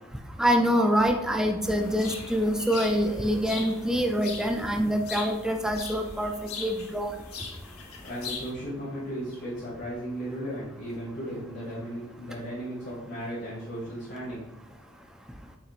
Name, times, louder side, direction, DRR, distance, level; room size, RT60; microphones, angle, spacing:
voice 1, 0.4-7.1, equal, 5° right, 3 dB, 0.4 m, -25 dB
sound 1, 1.6-8.5, left 5 dB, 90° left, 1.1 m, -41 dB
voice 2, 8.0-14.4, equal, 50° left, -9 dB, 2.2 m, -36 dB
7.0 x 5.9 x 2.5 m, 0.98 s
head